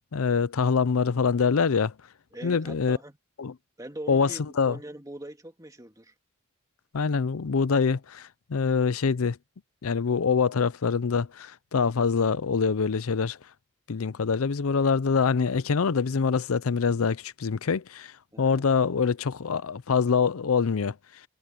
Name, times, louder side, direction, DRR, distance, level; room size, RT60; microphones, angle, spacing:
voice 1, 0.1-1.9 2.4-3.0 3.4-3.5 4.1-4.3 4.6-4.8 6.9-9.4 9.8-13.4 13.9-18.1 18.4-20.9, left 5 dB, 85° left, 0.6 m, -25 dB
voice 2, 2.3-3.2 3.8-6.1 18.3-18.6, right 1 dB, 15° right, 2.1 m, -42 dB
head